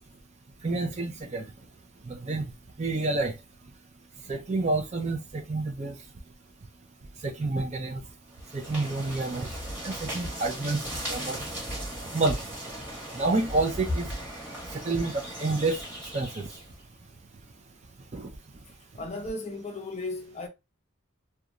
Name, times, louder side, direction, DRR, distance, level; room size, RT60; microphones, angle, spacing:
voice 1, 0.6-1.5 2.1-2.4 2.8-3.3 4.3-5.9 7.2-8.0 8.5-9.5 9.8-10.8 11.1-11.4 12.1-12.4 13.2-14.1 14.8-15.8 16.1-16.5 18.1-18.3, right 3 dB, 35° right, 0.4 m, -28 dB
sound 1, 8.3-16.7, equal, 10° right, 1.2 m, -37 dB
voice 2, 18.9-20.5, left 2 dB, 30° left, 0.5 m, -35 dB
2.9 x 2.3 x 2.4 m
head